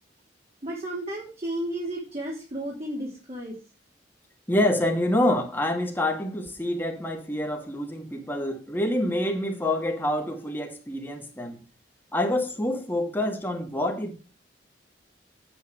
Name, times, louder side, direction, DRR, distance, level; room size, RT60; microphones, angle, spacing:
voice 1, 0.6-3.5, right 1 dB, 35° right, 3.4 m, -33 dB
voice 2, 4.5-11.6 12.1-14.2, left 1 dB, 10° left, 2.3 m, -27 dB
9.1 x 9.0 x 4.9 m
head